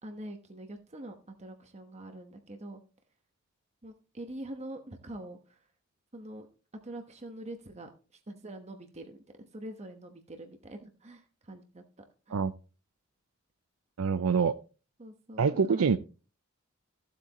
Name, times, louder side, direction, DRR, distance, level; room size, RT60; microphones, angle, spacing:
voice 1, 0.0-2.8 3.8-5.6 6.1-6.5 6.8-11.8 12.3-12.4 15.0-16.0, right 1 dB, 30° right, 1.1 m, -44 dB
voice 2, 14.0-14.6 15.4-16.0, right 5 dB, 85° right, 0.5 m, -25 dB
14.5 x 8.1 x 3.0 m
head